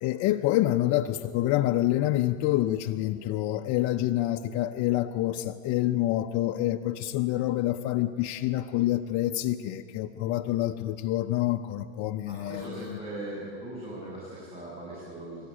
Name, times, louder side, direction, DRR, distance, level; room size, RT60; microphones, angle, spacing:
voice 1, 0.0-13.0, left 14 dB, 50° left, 6 dB, 0.8 m, -27 dB
voice 2, 12.3-15.5, right 1 dB, 15° right, -7 dB, 7.6 m, -39 dB
26.5 x 14.0 x 9.9 m, 2.4 s
supercardioid pair, 120°, 35 cm